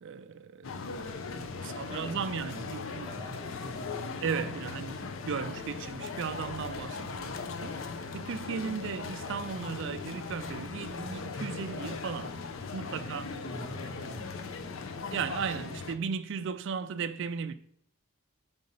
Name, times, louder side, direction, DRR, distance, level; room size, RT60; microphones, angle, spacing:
voice 1, 0.0-0.7 1.3-3.1 4.2-7.8 8.1-12.4 12.7-13.2 15.1-17.5, right 6 dB, 55° right, 0.3 m, -36 dB
sound 1, 0.6-15.9, left 4 dB, 60° left, 0.5 m, -39 dB
voice 2, 1.6-2.3 3.0-5.1 12.8-15.0, equal, 25° left, 1.3 m, -45 dB
5.3 x 3.9 x 5.2 m
head